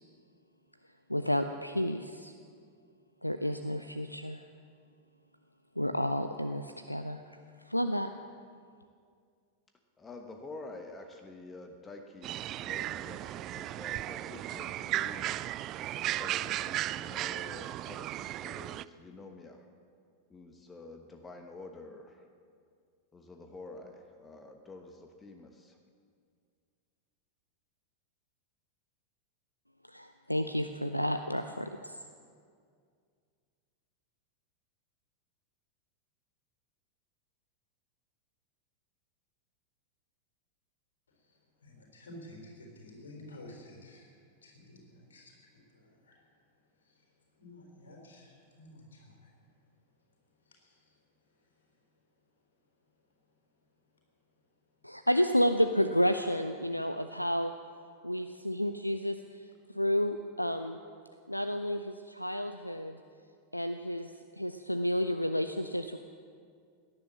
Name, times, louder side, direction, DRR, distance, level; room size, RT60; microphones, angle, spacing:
voice 1, 1.1-2.3 3.2-4.4 5.8-7.2 7.7-8.1 29.9-32.0 54.8-57.5 58.0-59.4 59.7-60.8 61.3-63.0 63.5-66.0, equal, 90° left, 9 dB, 0.5 m, -31 dB
voice 2, 10.0-15.4 15.9-19.7 20.3-22.3 23.1-25.8, left 2 dB, 15° left, 4 dB, 1.2 m, -48 dB
sound 1, 12.2-18.8, right 14 dB, 35° right, 0.3 m, -35 dB
voice 3, 41.1-46.2 46.8-47.1 47.4-49.3 50.4-51.0 51.4-51.8, left 1 dB, 70° left, 1 dB, 4.1 m, -52 dB
17.5 x 10.5 x 7.4 m, 2.2 s
figure-of-eight pair, 90°, 0 cm